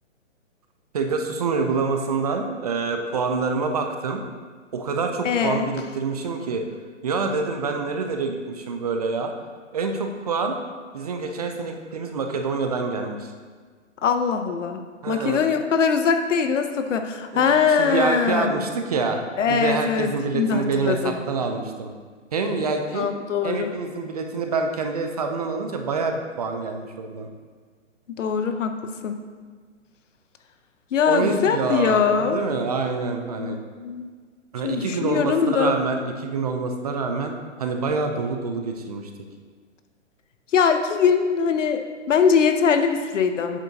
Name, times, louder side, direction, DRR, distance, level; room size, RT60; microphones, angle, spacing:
voice 1, 0.9-4.2 4.7-6.6 7.0-9.3 9.7-10.5 10.9-13.3 15.0-15.4 17.3-19.2 19.5-21.9 22.3-23.1 23.4-27.3 31.1-33.6 34.5-37.3 37.6-39.1, right 4 dB, 30° right, 4 dB, 0.4 m, -26 dB
voice 2, 5.2-5.7 14.0-18.6 19.4-21.2 22.9-23.7 28.2-29.2 30.9-32.4 33.4-34.1 34.6-35.8 40.5-43.6, left 6 dB, 70° left, 7 dB, 0.7 m, -22 dB
8.1 x 6.9 x 2.7 m, 1.5 s
hypercardioid pair, 145°, 39 cm